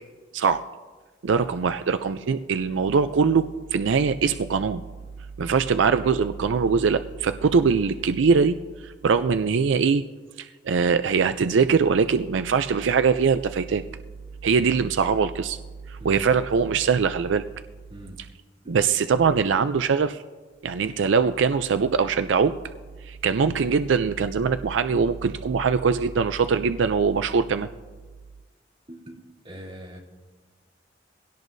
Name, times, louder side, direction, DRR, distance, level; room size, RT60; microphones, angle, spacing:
voice 1, 1.2-4.8 5.4-8.6 8.8-10.1 10.4-13.8 14.4-15.6 15.9-17.5 18.7-20.2 20.6-22.6 23.0-27.7, right 5 dB, 85° right, 11 dB, 0.4 m, -22 dB
voice 2, 28.9-29.2 29.4-30.0, equal, 35° right, -3 dB, 3.0 m, -42 dB
22.0 x 17.0 x 2.7 m, 1.4 s
head